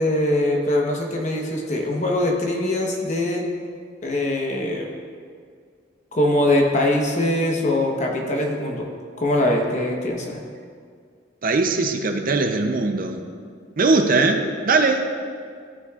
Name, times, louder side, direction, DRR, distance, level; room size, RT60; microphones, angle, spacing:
voice 1, 0.0-3.5 4.0-4.9 6.1-8.9 9.2-10.4, left 1 dB, 40° left, 0 dB, 1.0 m, -22 dB
voice 2, 11.4-13.2 13.8-15.1, right 3 dB, 45° right, 5 dB, 0.6 m, -20 dB
14.5 x 6.0 x 2.4 m, 2.1 s
head